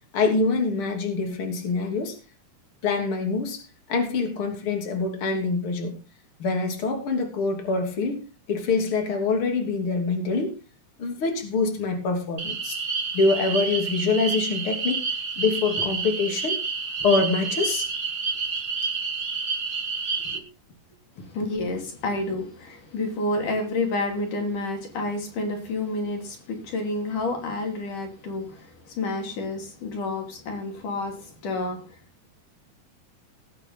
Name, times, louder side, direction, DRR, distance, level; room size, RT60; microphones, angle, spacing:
voice 1, 0.1-2.2 2.8-6.0 6.4-8.2 8.5-10.5 11.0-12.8 13.1-15.0 15.4-16.6 17.0-17.9 20.3-20.5, left 4 dB, 45° left, 3 dB, 3.8 m, -25 dB
sound 1, 12.4-20.4, right 5 dB, 35° right, 1.3 m, -29 dB
voice 2, 21.2-31.9, left 2 dB, 75° left, 3 dB, 4.5 m, -29 dB
19.5 x 9.1 x 3.8 m, 0.32 s
omnidirectional pair, 3.7 m